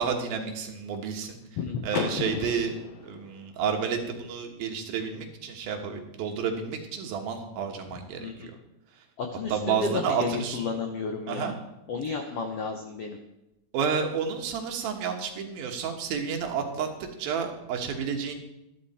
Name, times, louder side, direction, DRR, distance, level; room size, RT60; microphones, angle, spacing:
voice 1, 0.0-1.4 1.8-8.5 9.5-10.7 11.3-11.5 12.1-12.2 13.7-16.9 17.2-18.3, right 6 dB, 80° right, 3 dB, 3.2 m, -30 dB
voice 2, 1.6-1.9 2.2-2.5 8.1-8.5 9.2-11.5 11.9-13.2, left 5 dB, 90° left, 4 dB, 1.3 m, -32 dB
Car / Door, 1.9-3.8, left 5 dB, 75° left, 3.0 m, -35 dB
13.0 x 11.5 x 4.3 m, 0.89 s
omnidirectional pair, 4.2 m